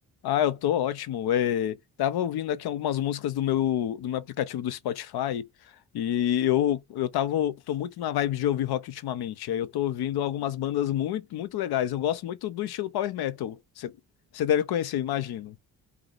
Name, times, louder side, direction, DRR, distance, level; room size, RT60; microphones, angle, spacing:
voice 1, 0.2-5.5 5.9-13.9 14.3-15.6, left 11 dB, 60° left, 0.6 m, -28 dB
2.7 x 2.0 x 3.8 m
supercardioid pair, 50°, 44 cm